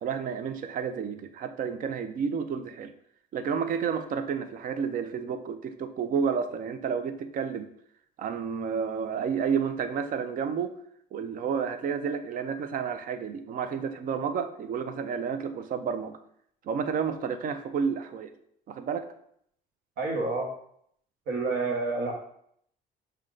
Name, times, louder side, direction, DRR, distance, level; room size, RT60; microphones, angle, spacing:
voice 1, 0.0-2.9 3.3-7.7 8.2-10.7 11.1-16.2 16.6-18.3 18.7-19.1, right 6 dB, 55° right, 9 dB, 0.5 m, -30 dB
voice 2, 20.0-20.5 21.3-22.1, right 3 dB, 70° right, 2 dB, 1.1 m, -28 dB
6.1 x 2.3 x 3.8 m, 0.69 s
cardioid pair, 110°, 17 cm